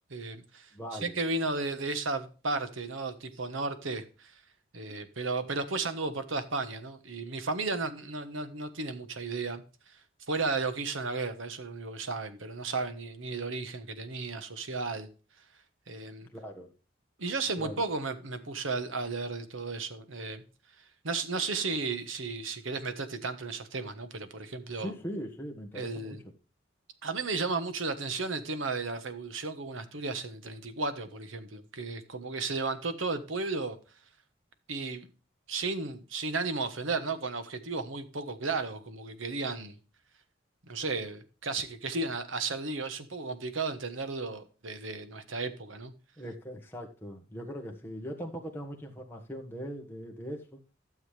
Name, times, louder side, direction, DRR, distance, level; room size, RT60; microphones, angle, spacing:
voice 1, 0.1-4.3 4.7-9.6 10.3-15.1 15.9-16.3 17.2-20.4 21.0-24.9 25.7-26.2 27.0-33.8 34.7-35.1 35.5-39.8 40.7-45.9, right 3 dB, 85° right, 1.3 m, -34 dB
voice 2, 0.7-1.2 16.3-16.7 17.6-17.8 24.8-26.2 46.2-50.6, equal, 10° left, 1.5 m, -40 dB
12.5 x 7.3 x 3.3 m
head